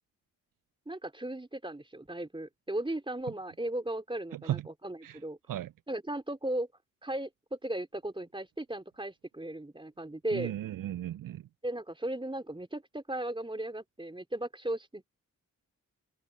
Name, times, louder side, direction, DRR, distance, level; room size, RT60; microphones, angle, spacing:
voice 1, 0.9-5.4 5.9-6.7 7.0-10.5 11.6-15.1, right 1 dB, 15° right, 3.1 m, -36 dB
voice 2, 4.3-4.6 5.0-5.2 5.5-5.7 10.3-11.4, right 13 dB, 70° right, 0.5 m, -35 dB
cardioid pair, 45°, 34 cm